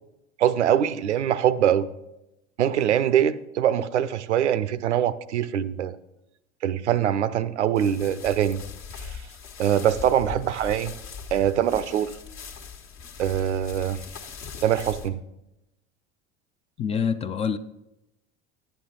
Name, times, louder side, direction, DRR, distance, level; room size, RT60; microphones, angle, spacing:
voice 1, 0.4-1.9 2.6-6.0 6.6-8.6 9.0-9.2 9.6-11.0 11.3-12.1 13.2-14.0 14.6-15.2, right 10 dB, 75° right, 0.6 m, -23 dB
sound 1, 7.8-15.1, left 6 dB, 50° left, 1.3 m, -40 dB
voice 2, 16.8-17.6, left 6 dB, 20° left, 0.3 m, -26 dB
11.0 x 8.9 x 3.8 m
figure-of-eight pair, 70°, 35 cm